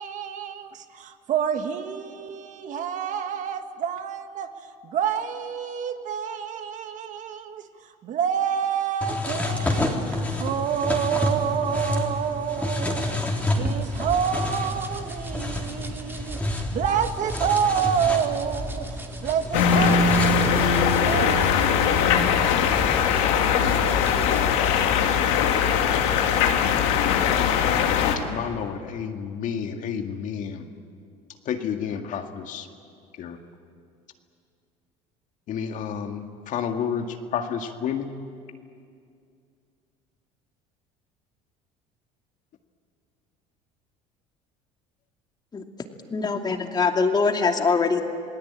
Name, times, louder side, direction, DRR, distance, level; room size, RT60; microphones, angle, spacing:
voice 1, 0.0-4.5 4.8-13.2 13.6-22.7 23.1-24.0, right 8 dB, 50° right, 7 dB, 1.8 m, -28 dB
sound 1, 9.0-20.8, left 1 dB, 10° left, 3.8 m, -29 dB
sound 2, 13.1-24.8, right 2 dB, 15° right, 2.7 m, -37 dB
sound 3, 19.5-28.2, left 7 dB, 80° left, 2.2 m, -21 dB
voice 2, 28.3-30.6 31.5-32.7 33.2-33.4 35.5-38.1, left 7 dB, 55° left, 5 dB, 2.0 m, -30 dB
voice 3, 46.1-48.0, left 4 dB, 25° left, 4 dB, 2.5 m, -23 dB
28.0 x 19.0 x 8.9 m, 2.3 s
supercardioid pair, 100°, 16 cm